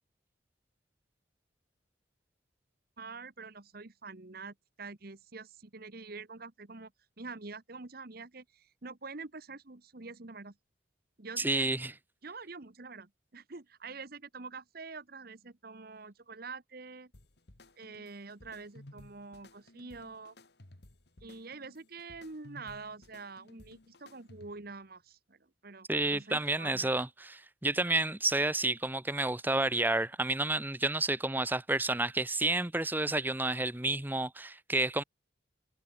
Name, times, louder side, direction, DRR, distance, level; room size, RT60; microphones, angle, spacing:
voice 1, 3.0-6.9 7.2-10.6 11.2-11.7 12.2-17.1 17.8-20.4 21.2-27.1, right 4 dB, 50° right, 1.2 m, -46 dB
voice 2, 11.4-11.9 25.9-35.0, right 2 dB, 10° right, 0.7 m, -30 dB
sound 1, 17.1-24.7, left 1 dB, 60° left, 2.4 m, -56 dB
head